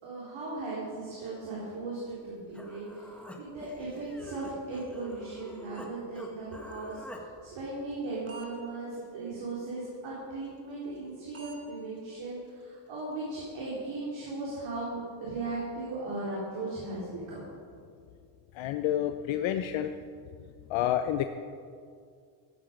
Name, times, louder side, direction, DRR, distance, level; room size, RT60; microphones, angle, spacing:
voice 1, 0.0-3.1 3.3-17.4, right 2 dB, 65° right, -6 dB, 3.9 m, -37 dB
Human voice, 2.2-2.3 2.5-5.9 6.2-7.2, equal, ahead, 1.4 m, -46 dB
sound 1, 7.5-8.6 8.9-9.1 9.4-9.6 9.9-10.1 10.4-10.6 11.0-11.1 11.3-11.6 12.0-12.1 12.5-12.6 13.0-13.1 13.5-13.7, right 5 dB, 30° right, 2.3 m, -49 dB
voice 2, 18.6-19.9 20.7-21.2, left 11 dB, 65° left, 8 dB, 0.7 m, -29 dB
14.5 x 10.5 x 5.2 m, 2.3 s
cardioid pair, 110°, 49 cm